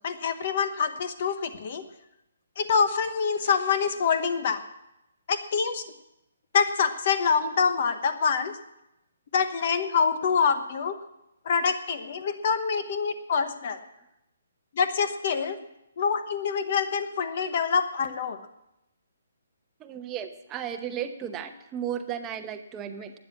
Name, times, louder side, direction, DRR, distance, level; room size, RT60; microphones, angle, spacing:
voice 1, 0.0-1.8 2.6-4.6 5.3-5.8 6.5-8.6 9.3-11.0 11.4-13.8 14.7-15.6 16.0-18.4, left 6 dB, 40° left, 10 dB, 1.0 m, -26 dB
voice 2, 19.8-23.1, right 9 dB, 15° right, 7 dB, 0.9 m, -34 dB
12.5 x 9.7 x 8.4 m, 0.88 s
hypercardioid pair, 170°, 0 cm